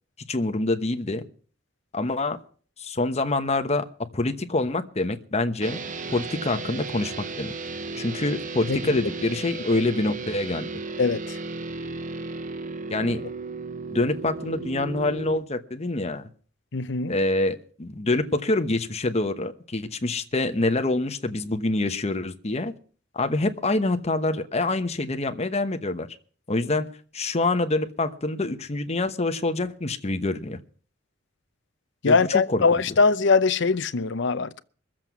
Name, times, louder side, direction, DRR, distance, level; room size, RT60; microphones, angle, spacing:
voice 1, 0.3-1.2 1.9-2.4 2.8-3.9 4.1-5.8 6.1-7.5 8.0-10.7 12.9-13.2 13.9-16.3 17.1-22.7 23.1-26.1 26.5-26.9 27.1-30.6 32.1-32.6, left 2 dB, 35° left, 1.0 m, -26 dB
sound 1, 5.6-15.4, right 3 dB, 40° right, 0.8 m, -35 dB
voice 2, 11.0-11.4 16.7-17.2 32.0-34.6, left 4 dB, 65° left, 0.7 m, -22 dB
22.5 x 7.6 x 6.1 m
head